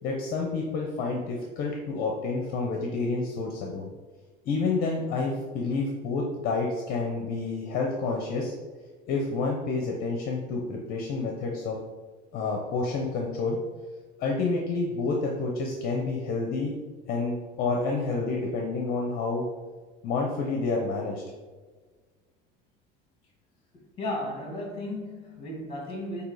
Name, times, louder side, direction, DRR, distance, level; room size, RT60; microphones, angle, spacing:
voice 1, 0.0-3.9 4.4-8.5 9.1-11.8 12.3-13.6 14.2-16.7 17.1-19.5 20.0-21.2, left 3 dB, 50° left, 0 dB, 0.9 m, -29 dB
voice 2, 24.0-26.2, left 1 dB, 30° left, 0 dB, 2.0 m, -34 dB
8.1 x 2.9 x 4.9 m, 1.4 s
cardioid pair, 160°, 20 cm